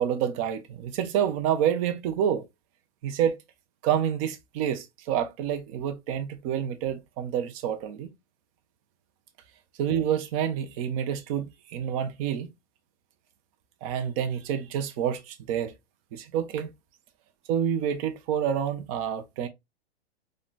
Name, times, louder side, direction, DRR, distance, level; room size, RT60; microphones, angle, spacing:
voice 1, 0.0-2.4 3.0-3.4 3.8-8.1 9.8-12.5 13.8-15.7 16.1-16.7 17.5-19.5, right 9 dB, 35° right, 0.5 m, -28 dB
3.7 x 2.1 x 2.2 m
hypercardioid pair, 140°, 32 cm